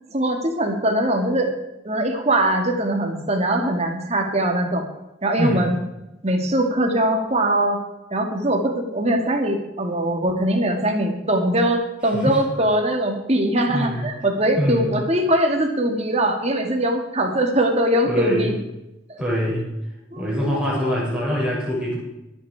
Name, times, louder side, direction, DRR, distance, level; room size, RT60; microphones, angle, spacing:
voice 1, 0.1-1.5 1.8-4.8 5.2-5.8 6.2-7.8 8.1-18.5 19.1-19.2 20.1-20.3 20.5-20.6, right 1 dB, 35° right, 2 dB, 2.2 m, -21 dB
voice 2, 5.3-5.7 12.1-12.4 13.7-14.1 14.5-14.9 18.0-18.6 19.2-19.7 20.1-22.0, equal, 5° right, -6 dB, 6.9 m, -24 dB
22.0 x 8.5 x 4.9 m, 0.93 s
head